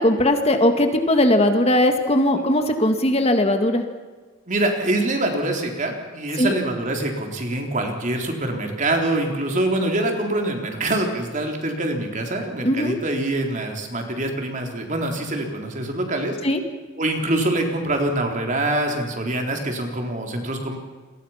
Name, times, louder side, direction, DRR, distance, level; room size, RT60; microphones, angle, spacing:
voice 1, 0.0-3.8 6.4-6.5 12.6-13.0 16.4-16.6, left 1 dB, 30° left, 6 dB, 2.0 m, -19 dB
voice 2, 4.5-16.4 17.0-20.8, right 1 dB, 40° right, 2 dB, 3.8 m, -25 dB
28.5 x 23.0 x 5.8 m, 1.4 s
head